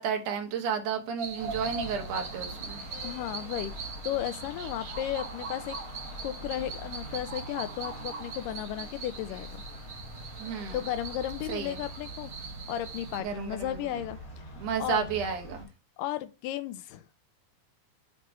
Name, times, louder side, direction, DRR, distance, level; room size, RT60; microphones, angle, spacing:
voice 1, 0.0-2.8 10.4-10.8 11.5-11.8 13.2-13.8 14.6-15.7, right 6 dB, 70° right, 2.4 m, -32 dB
sound 1, 1.2-13.2, right 5 dB, 50° right, 1.9 m, -41 dB
sound 2, 1.4-15.6, equal, 40° left, 1.3 m, -44 dB
voice 2, 3.0-5.8 6.2-9.5 10.7-12.3 12.7-14.4 14.8-15.1 16.0-17.0, left 12 dB, 85° left, 2.2 m, -34 dB
8.2 x 3.1 x 4.6 m
omnidirectional pair, 3.8 m